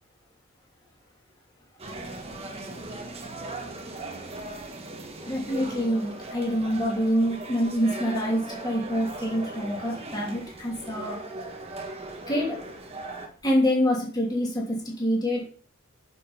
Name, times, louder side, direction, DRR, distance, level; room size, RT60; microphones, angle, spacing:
sound 1, 1.8-13.3, right 2 dB, 25° right, 1.4 m, -38 dB
voice 1, 5.3-11.2 12.3-12.5 13.4-15.5, equal, 20° left, -3 dB, 2.9 m, -26 dB
9.2 x 6.3 x 5.6 m, 0.43 s
head